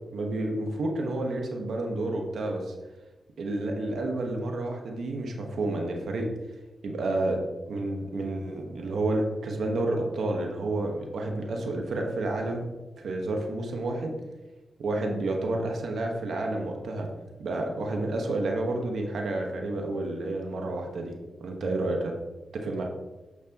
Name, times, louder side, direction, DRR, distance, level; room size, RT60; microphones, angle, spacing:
voice 1, 0.1-2.7 3.4-6.3 6.8-7.4 7.7-12.6 13.0-14.1 14.8-17.1 17.4-21.1 21.4-22.1 22.5-22.8, right 2 dB, 85° right, 2 dB, 1.3 m, -30 dB
9.5 x 6.0 x 3.0 m, 1.1 s
cardioid pair, 55°, 0 cm